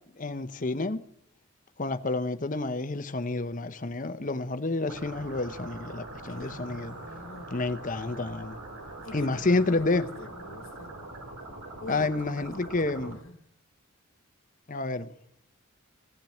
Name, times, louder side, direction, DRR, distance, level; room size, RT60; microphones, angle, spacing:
voice 1, 0.2-1.0 1.8-7.0 7.5-8.6 9.1-10.1 11.9-13.2 14.7-15.1, left 2 dB, 35° left, 0.8 m, -29 dB
sound 1, 4.9-13.1, right 2 dB, 90° right, 5.2 m, -43 dB
voice 2, 6.3-7.6 8.1-8.3 9.0-11.0 11.8-12.6 13.0-13.4, left 2 dB, 65° left, 1.3 m, -46 dB
17.0 x 7.5 x 9.6 m
head